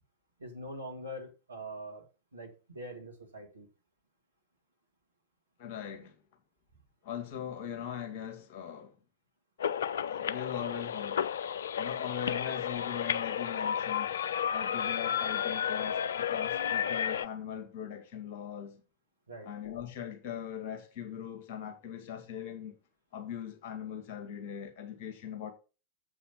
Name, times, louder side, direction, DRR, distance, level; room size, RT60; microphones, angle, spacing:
voice 1, 0.4-2.0 2.3-3.7 12.3-12.4 14.7-14.9 19.3-19.5, equal, 80° right, 2.3 m, -43 dB
voice 2, 5.6-6.2 7.0-9.0 10.1-11.3 11.8-14.2 14.5-18.8 19.4-22.8 23.1-25.5, left 9 dB, 45° left, 2.4 m, -40 dB
sound 1, 9.6-17.3, left 8 dB, 65° left, 0.4 m, -32 dB
7.5 x 5.7 x 5.8 m
figure-of-eight pair, 90°, 0 cm